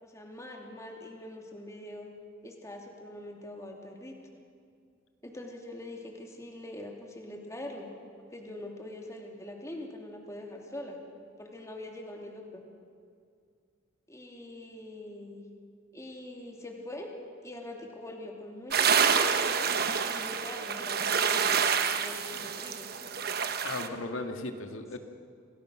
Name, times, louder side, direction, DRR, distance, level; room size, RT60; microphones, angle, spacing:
voice 1, 0.0-2.1 2.4-4.2 5.2-7.9 8.3-11.0 11.4-12.6 14.1-15.5 15.9-17.1 17.4-19.7 20.1-21.6 21.9-22.9, left 1 dB, 15° left, 1 dB, 2.7 m, -43 dB
sound 1, 18.7-23.9, right 6 dB, 50° right, 1.2 m, -27 dB
voice 2, 23.6-25.0, left 2 dB, 80° left, 5 dB, 2.0 m, -36 dB
28.0 x 19.0 x 6.5 m, 2.3 s
head